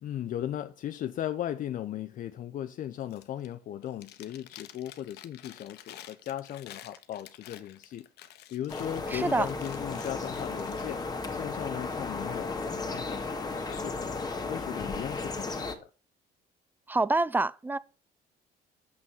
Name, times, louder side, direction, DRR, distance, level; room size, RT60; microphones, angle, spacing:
voice 1, 0.0-8.1 8.5-11.0 11.3-14.1 14.5-15.9, left 11 dB, 55° left, 0.5 m, -37 dB
Chewing mastication, 3.0-3.5 3.8-10.8, left 12 dB, 80° left, 1.0 m, -50 dB
sound 1, 8.7-15.7, left 3 dB, 25° left, 1.6 m, -35 dB
voice 2, 9.1-9.5 16.9-17.8, right 2 dB, 10° right, 0.4 m, -26 dB
7.1 x 6.2 x 6.1 m
cardioid pair, 110°, 17 cm